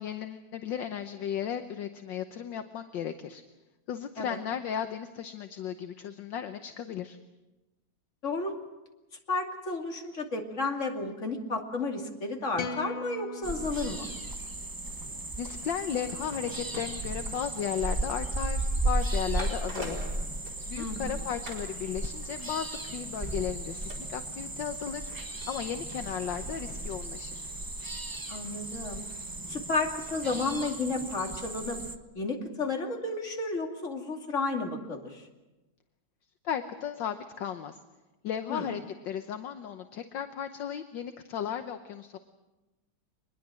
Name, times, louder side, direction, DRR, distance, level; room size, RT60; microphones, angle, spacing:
voice 1, 0.0-3.4 3.9-7.2 15.4-20.0 20.7-25.1 25.5-27.5 36.4-37.8 38.2-42.2, left 9 dB, 65° left, 8 dB, 1.6 m, -35 dB
voice 2, 8.2-8.5 9.3-14.1 20.8-21.3 28.3-29.0 29.5-31.8 32.1-35.3 38.5-38.7, left 3 dB, 35° left, 2 dB, 2.9 m, -32 dB
sound 1, 12.6-14.9, left 4 dB, 90° left, 2.1 m, -40 dB
sound 2, 13.4-32.0, right 2 dB, 20° right, 0.6 m, -35 dB
sound 3, 15.9-21.1 21.5-21.7 22.0-31.2 31.5-31.6, equal, 50° right, 5.2 m, -48 dB
24.5 x 21.5 x 7.7 m, 1.1 s
omnidirectional pair, 2.3 m